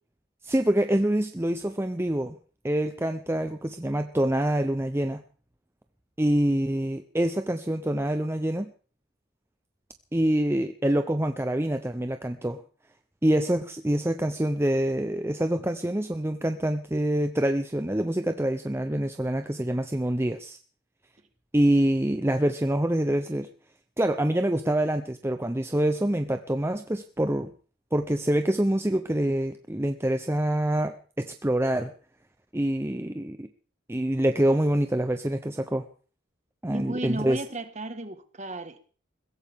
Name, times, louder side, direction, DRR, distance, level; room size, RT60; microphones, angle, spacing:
voice 1, 0.4-2.4 2.6-5.2 6.2-8.7 10.1-12.6 13.2-20.6 21.5-23.5 24.0-27.5 27.9-31.9 32.5-33.5 33.9-35.8 36.6-37.4, right 1 dB, 10° right, 0.7 m, -26 dB
voice 2, 36.7-38.8, right 2 dB, 35° right, 1.6 m, -34 dB
22.0 x 16.0 x 3.6 m
head